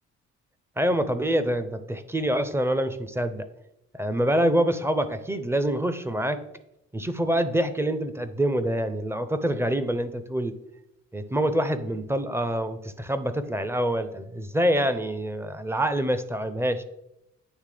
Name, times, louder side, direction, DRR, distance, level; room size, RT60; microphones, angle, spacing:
voice 1, 0.8-3.5 3.9-6.4 6.9-10.6 11.1-16.8, right 1 dB, 10° right, 10 dB, 0.5 m, -26 dB
9.2 x 3.3 x 3.3 m, 0.84 s
cardioid pair, 90°, 30 cm